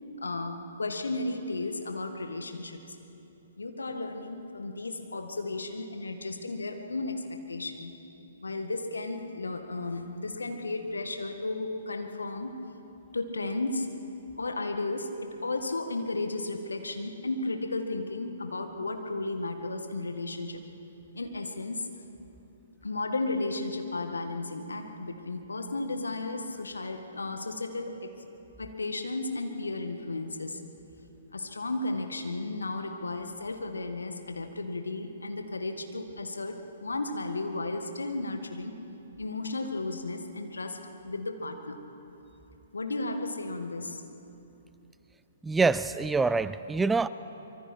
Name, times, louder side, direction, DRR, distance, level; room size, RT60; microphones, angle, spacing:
voice 1, 0.2-3.0 3.6-8.0 8.4-12.7 13.1-14.1 14.4-20.6 21.1-21.9 22.8-28.1 28.6-30.7 31.3-38.8 39.2-41.8 42.7-44.0, left 2 dB, 75° left, 6 dB, 1.8 m, -34 dB
voice 2, 45.4-47.1, right 4 dB, 10° right, 15 dB, 0.4 m, -25 dB
24.5 x 24.0 x 4.5 m, 2.9 s
figure-of-eight pair, 120°, 0 cm